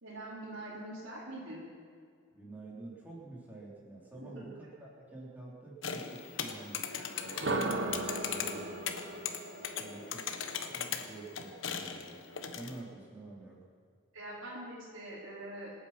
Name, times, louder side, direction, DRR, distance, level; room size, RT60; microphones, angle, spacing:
voice 1, 0.0-1.6 4.1-4.4 8.1-8.7 14.1-15.7, right 1 dB, 80° right, -9 dB, 4.0 m, -44 dB
voice 2, 2.3-7.6 8.4-8.6 9.8-10.3 10.7-12.1 12.5-13.6, right 2 dB, 10° right, -5 dB, 3.9 m, -48 dB
sound 1, 5.8-12.8, left 7 dB, 70° left, 1.2 m, -39 dB
sound 2, 7.2-11.2, right 2 dB, 60° right, 1.4 m, -37 dB
26.5 x 9.0 x 6.0 m, 2.2 s
head